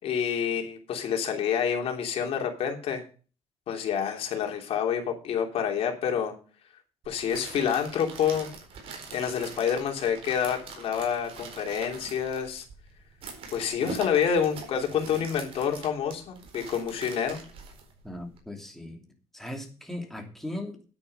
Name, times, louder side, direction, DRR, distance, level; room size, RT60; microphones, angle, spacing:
voice 1, 0.0-3.0 3.7-6.3 7.1-8.5 9.1-12.6 13.5-17.4, left 8 dB, 60° left, 3 dB, 3.1 m, -28 dB
sound 1, 7.0-18.4, right 4 dB, 55° right, 4.3 m, -44 dB
voice 2, 18.0-19.0 19.3-20.8, left 1 dB, 5° left, 2 dB, 2.8 m, -38 dB
10.0 x 8.6 x 5.5 m, 0.37 s
cardioid pair, 140°, 11 cm